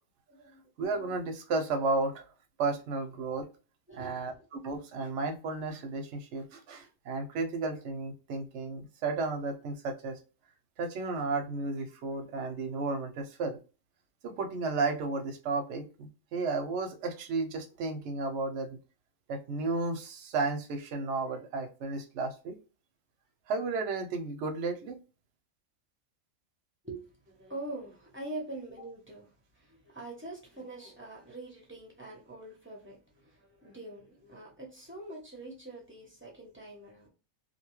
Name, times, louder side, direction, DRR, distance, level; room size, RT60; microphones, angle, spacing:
voice 1, 0.3-0.6 3.9-4.4 26.8-37.1, right 2 dB, 15° right, 0.6 m, -44 dB
voice 2, 0.8-2.2 2.6-3.5 3.9-10.2 10.8-13.6 14.2-18.8 19.3-22.6 23.5-25.0, right 3 dB, 65° right, 0.8 m, -33 dB
2.7 x 2.2 x 2.9 m
omnidirectional pair, 1.4 m